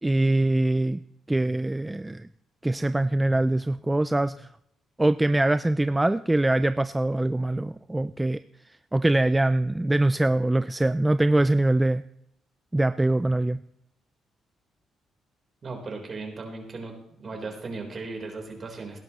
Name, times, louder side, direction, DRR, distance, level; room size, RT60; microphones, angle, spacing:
voice 1, 0.0-1.0 1.3-2.3 2.6-4.5 5.0-12.0 12.7-13.6, right 2 dB, 10° right, 13 dB, 0.3 m, -23 dB
voice 2, 15.6-16.9 17.2-19.0, right 3 dB, 40° right, 3 dB, 3.8 m, -36 dB
18.0 x 11.0 x 3.0 m, 0.78 s
cardioid pair, 90°, 0 cm